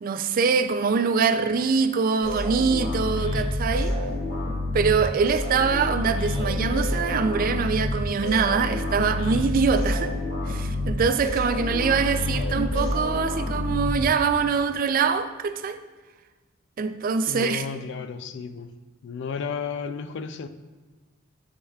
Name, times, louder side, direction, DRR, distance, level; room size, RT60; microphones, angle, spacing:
voice 1, 0.0-4.0 4.7-10.1 10.5-15.8 16.8-17.7, right 5 dB, 45° right, 0.3 m, -24 dB
sound 1, 2.2-14.4, left 1 dB, 80° left, 2.0 m, -28 dB
voice 2, 17.3-18.7 19.0-20.5, left 6 dB, 60° left, 0.3 m, -33 dB
7.8 x 6.3 x 2.3 m
head